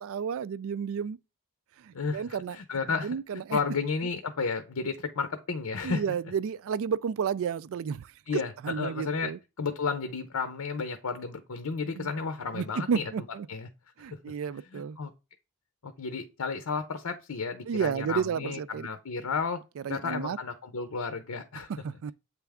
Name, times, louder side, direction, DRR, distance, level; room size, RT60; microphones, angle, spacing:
voice 1, 0.0-1.2 1.8-2.6 3.0-3.6 5.8-9.4 12.0-12.1 12.5-13.5 14.0-15.0 17.7-18.9 19.8-20.4 21.7-22.1, right 7 dB, 60° right, 0.3 m, -32 dB
voice 2, 1.9-3.2 3.5-6.0 8.3-9.3 9.6-13.1 13.5-13.7 14.1-14.2 14.7-15.1 15.8-19.6 19.9-21.7, left 5 dB, 75° left, 0.7 m, -32 dB
8.1 x 3.4 x 3.5 m
head